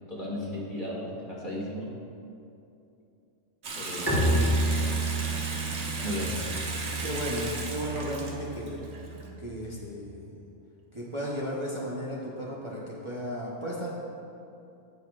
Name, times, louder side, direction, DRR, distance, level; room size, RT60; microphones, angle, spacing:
voice 1, 0.1-1.9 3.8-4.6 6.0-6.4, left 1 dB, 40° left, -4 dB, 1.9 m, -35 dB
Water tap faucet / Sink (filling or washing) / Bathtub (filling or washing), 3.6-9.3, right 3 dB, 65° right, 1.4 m, -36 dB
Bowed string instrument, 4.1-9.6, right 1 dB, 15° left, 1.7 m, -30 dB
voice 2, 7.0-8.8 9.4-10.3 10.9-13.9, equal, 25° right, -6 dB, 1.1 m, -35 dB
17.5 x 6.8 x 2.5 m, 2.7 s
omnidirectional pair, 1.3 m